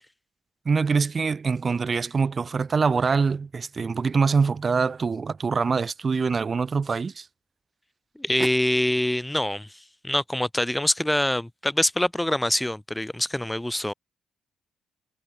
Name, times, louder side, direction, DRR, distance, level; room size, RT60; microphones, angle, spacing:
voice 1, 0.6-7.3, right 5 dB, 35° right, 1.1 m, -24 dB
voice 2, 8.2-9.7 10.0-13.9, left 1 dB, 5° left, 0.6 m, -25 dB
cardioid pair, 90°, 0 cm